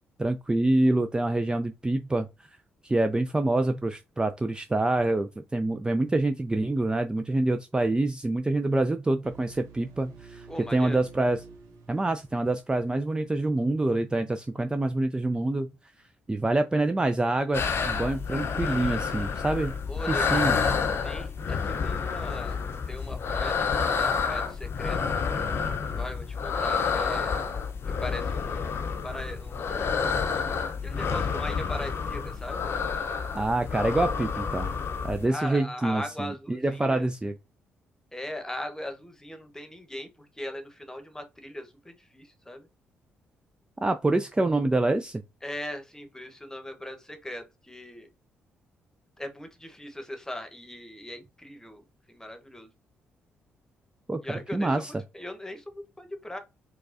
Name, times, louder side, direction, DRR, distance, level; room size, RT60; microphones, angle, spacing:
voice 1, 0.2-2.3 2.8-10.5 10.7-11.4 11.9-15.7 16.3-19.7 20.1-20.6 33.3-34.7 35.0-37.3 43.8-45.2 54.1-54.9, right 2 dB, 15° right, 0.4 m, -26 dB
sound 1, 9.2-13.1, right 5 dB, 70° right, 0.8 m, -50 dB
voice 2, 10.5-11.0 19.9-20.4 21.0-22.6 22.9-25.0 25.9-27.4 28.0-29.8 30.8-32.7 35.3-37.1 38.1-42.7 45.4-48.1 49.2-52.7 54.2-56.4, left 1 dB, 10° left, 1.0 m, -39 dB
sound 2, 17.5-35.3, left 5 dB, 50° left, 0.7 m, -29 dB
4.6 x 2.3 x 2.6 m
hypercardioid pair, 45°, 5 cm